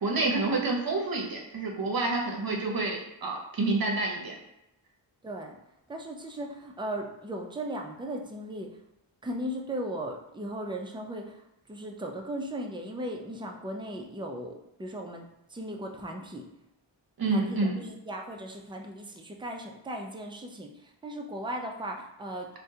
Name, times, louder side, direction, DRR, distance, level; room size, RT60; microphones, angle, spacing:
voice 1, 0.0-4.3 17.2-17.8, right 3 dB, 50° right, 0 dB, 0.7 m, -28 dB
voice 2, 5.2-5.6 5.9-8.7 9.2-11.4 11.7-16.5 17.3-22.5, right 1 dB, 10° right, 1 dB, 0.4 m, -37 dB
3.6 x 2.2 x 2.7 m, 0.85 s
wide cardioid pair, 70°, 47 cm